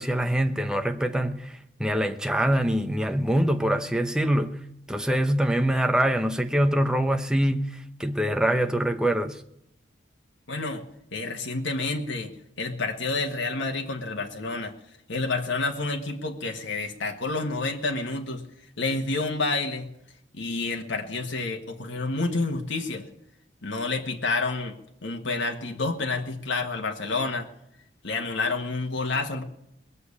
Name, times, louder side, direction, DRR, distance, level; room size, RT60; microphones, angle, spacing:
voice 1, 0.0-1.5 1.8-4.6 4.9-7.6 8.0-9.4, right 1 dB, 5° right, 0.7 m, -24 dB
voice 2, 10.5-10.8 11.1-12.3 12.6-14.7 15.1-18.4 18.8-19.9 20.3-23.1 23.6-27.5 28.0-29.4, left 3 dB, 75° left, 1.4 m, -29 dB
20.5 x 6.9 x 8.3 m
head